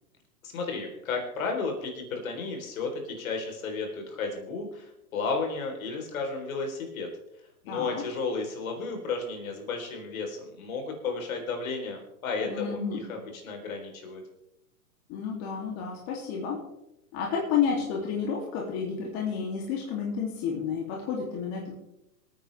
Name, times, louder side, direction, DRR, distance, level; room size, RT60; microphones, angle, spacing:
voice 1, 0.4-7.1 7.6-14.2, left 4 dB, 60° left, 3 dB, 3.8 m, -33 dB
voice 2, 7.7-8.0 12.4-13.1 15.1-16.6 17.1-21.8, left 6 dB, 35° left, -1 dB, 2.8 m, -31 dB
26.0 x 9.4 x 3.4 m, 0.86 s
hypercardioid pair, 130°, 45 cm